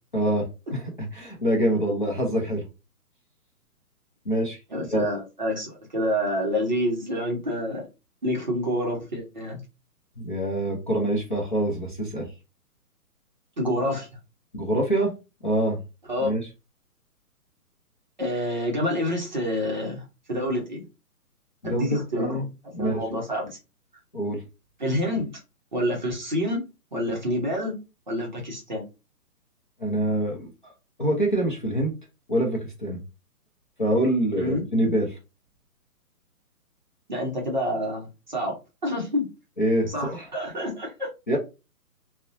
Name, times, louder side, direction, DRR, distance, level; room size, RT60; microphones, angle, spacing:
voice 1, 0.1-2.7 4.3-4.6 4.9-5.1 10.2-12.3 14.5-15.1 15.4-15.8 16.2-16.5 21.6-21.9 22.1-23.0 24.1-24.4 29.8-30.5 31.0-31.9 32.3-33.0 33.8-35.1 39.6-40.3 41.3-41.4, right 1 dB, 35° left, -2 dB, 0.4 m, -25 dB
voice 2, 4.7-7.8 8.2-9.6 13.6-14.1 16.1-16.3 18.2-20.0 20.3-20.8 21.6-22.4 22.8-23.6 24.8-25.4 25.7-26.6 26.9-27.8 28.1-28.8 34.4-34.7 37.1-38.6 38.8-39.3 39.9-41.1, equal, 30° right, -1 dB, 0.5 m, -27 dB
2.4 x 2.0 x 2.5 m, 0.28 s
hypercardioid pair, 160°, 46 cm